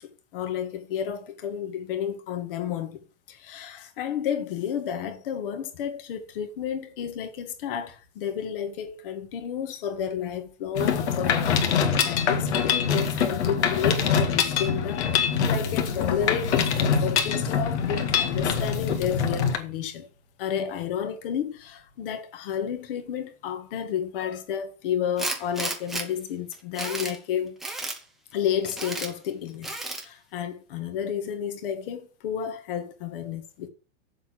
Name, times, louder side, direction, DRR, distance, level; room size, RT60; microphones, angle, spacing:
voice 1, 0.0-3.0 3.3-20.1 20.4-27.6 28.3-33.7, left 8 dB, 50° left, 2.0 m, -31 dB
Mechanisms, 10.8-19.6, left 7 dB, 65° left, 2.0 m, -24 dB
Tools, 25.2-26.1 26.5-27.2 27.6-28.0 28.6-29.1 29.6-30.1, right 2 dB, ahead, 0.5 m, -32 dB
7.4 x 6.7 x 7.6 m
supercardioid pair, 170°, 36 cm